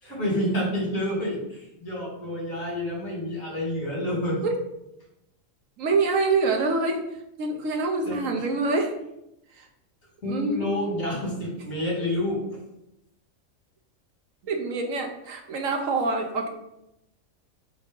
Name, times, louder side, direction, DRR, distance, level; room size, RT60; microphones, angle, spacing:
voice 1, 0.0-4.5 8.0-8.4 10.2-12.6, left 1 dB, 80° left, -4 dB, 3.0 m, -29 dB
voice 2, 5.8-7.0 7.4-9.0 9.5-9.7 10.2-10.7 12.0-12.1 14.4-16.5, right 3 dB, 70° right, 3 dB, 1.2 m, -26 dB
7.4 x 2.7 x 5.3 m, 0.85 s
omnidirectional pair, 1.5 m